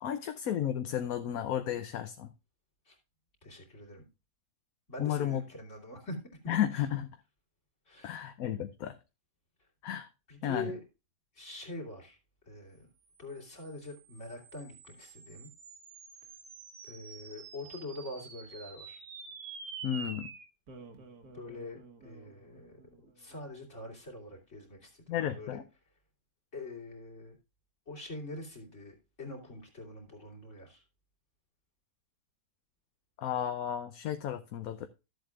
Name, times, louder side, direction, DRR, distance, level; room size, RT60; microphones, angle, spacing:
voice 1, 0.0-2.3 5.0-5.4 6.5-7.1 8.0-9.0 9.8-10.1 10.4-10.7 19.8-20.3 25.1-25.6 33.2-34.9, left 10 dB, 75° left, 1.2 m, -33 dB
voice 2, 3.4-4.1 4.9-6.2 6.7-6.9 7.9-8.3 10.3-10.8 11.3-12.2 12.5-12.9 13.2-15.5 16.8-19.0 21.3-25.6 26.5-27.4 27.9-30.8, left 2 dB, 50° left, 3.3 m, -44 dB
sound 1, 13.2-23.9, right 5 dB, 85° right, 1.8 m, -49 dB
13.5 x 7.8 x 2.4 m
omnidirectional pair, 1.6 m